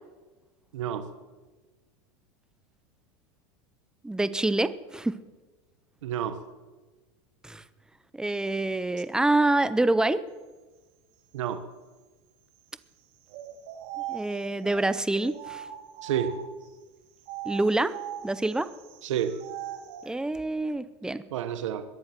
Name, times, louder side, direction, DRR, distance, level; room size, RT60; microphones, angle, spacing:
voice 1, 0.7-1.1 6.0-6.4 11.3-11.6 16.0-16.3 19.0-19.3 21.3-21.8, right 9 dB, 85° right, 10 dB, 1.3 m, -29 dB
voice 2, 4.0-5.2 7.4-7.6 8.1-10.3 14.1-15.7 17.4-18.0 18.2-18.7 20.0-21.2, right 2 dB, 5° right, 14 dB, 0.7 m, -26 dB
sound 1, 13.3-16.7 17.2-20.1, right 12 dB, 60° right, 2.6 m, -40 dB
22.0 x 10.5 x 6.0 m, 1.3 s
supercardioid pair, 125°, 16 cm